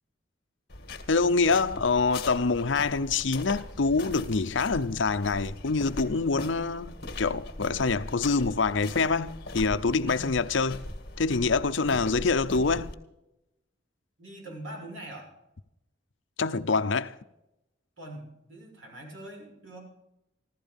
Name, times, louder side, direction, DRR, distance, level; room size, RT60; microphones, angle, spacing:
sound 1, 0.7-12.9, left 2 dB, 50° left, 1.9 m, -40 dB
voice 1, 1.1-10.8 11.2-12.9 16.4-17.2, left 4 dB, 75° left, 0.7 m, -26 dB
voice 2, 10.0-10.3 14.2-15.3 18.0-19.8, right 1 dB, 85° right, 6.7 m, -43 dB
15.5 x 13.5 x 5.3 m
head